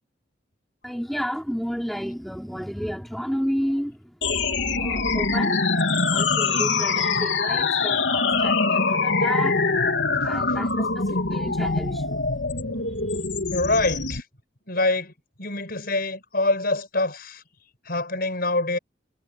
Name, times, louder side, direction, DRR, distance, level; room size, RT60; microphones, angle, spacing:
voice 1, 0.8-9.7 10.2-12.2 12.8-13.2, equal, ahead, 3.6 m, -32 dB
sound 1, 4.2-14.2, left 4 dB, 85° left, 3.8 m, -23 dB
voice 2, 13.5-14.2 14.7-15.1 15.4-17.4 17.8-18.8, left 2 dB, 55° left, 6.8 m, -25 dB
head